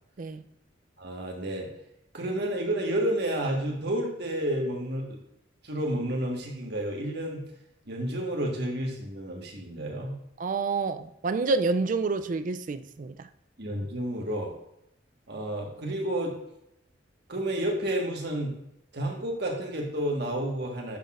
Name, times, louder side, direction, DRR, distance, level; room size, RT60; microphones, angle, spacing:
voice 1, 1.0-1.7 2.1-5.2 5.6-7.4 7.8-10.2 13.6-14.5 15.3-16.4 17.3-18.5 18.9-21.0, right 1 dB, 60° right, 0 dB, 1.5 m, -30 dB
voice 2, 10.4-13.1, right 4 dB, 40° right, 10 dB, 0.4 m, -28 dB
10.0 x 5.9 x 2.5 m, 0.79 s
head